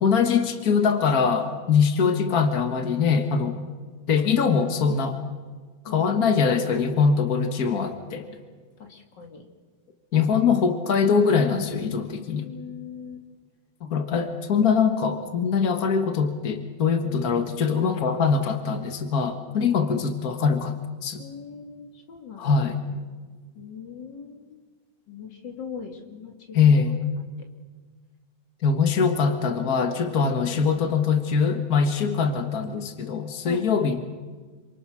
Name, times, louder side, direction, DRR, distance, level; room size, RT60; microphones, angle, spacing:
voice 1, 0.0-3.6 4.1-5.2 5.8-8.2 10.1-12.5 13.8-20.8 21.0-21.2 22.4-22.8 26.5-27.0 28.6-34.0, left 5 dB, 75° left, 6 dB, 0.8 m, -22 dB
voice 2, 5.9-6.3 8.3-8.4 8.8-9.5 12.3-13.2 19.7-19.8 21.2-22.6 22.9-23.0 23.5-24.6 25.1-26.7 27.2-27.5 33.4-33.7, left 6 dB, 35° left, 4 dB, 2.3 m, -41 dB
27.5 x 26.0 x 6.3 m, 1.5 s
omnidirectional pair, 4.2 m